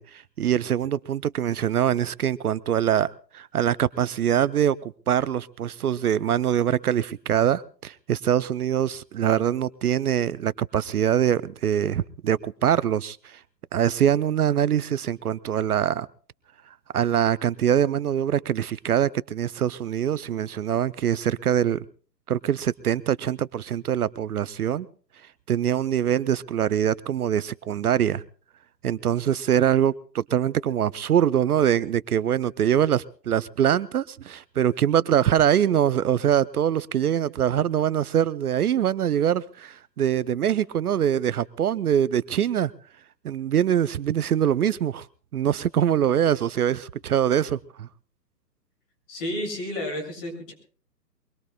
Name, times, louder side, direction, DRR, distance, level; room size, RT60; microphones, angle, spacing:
voice 1, 0.0-13.4 13.7-16.1 16.9-21.8 22.3-24.9 25.5-28.2 28.8-42.7 43.2-45.1 45.3-47.9, right 10 dB, 60° right, 18 dB, 0.7 m, -23 dB
voice 2, 49.1-50.5, left 1 dB, 35° left, 3 dB, 7.5 m, -31 dB
23.5 x 22.5 x 2.3 m, 0.42 s
figure-of-eight pair, 135°, 50 cm